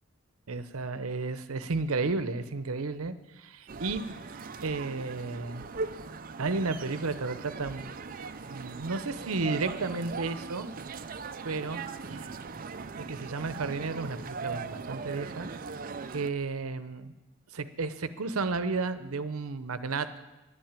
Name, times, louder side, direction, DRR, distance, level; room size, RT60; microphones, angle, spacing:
voice 1, 0.5-4.1 4.6-5.6 6.4-7.9 8.5-10.7 11.4-11.8 12.1-12.3 13.0-15.5 16.1-17.1 17.5-20.2, right 3 dB, 80° right, 12 dB, 0.8 m, -32 dB
sound 1, 3.7-16.3, right 4 dB, 40° right, 0.5 m, -40 dB
11.0 x 8.9 x 8.9 m, 1.1 s
head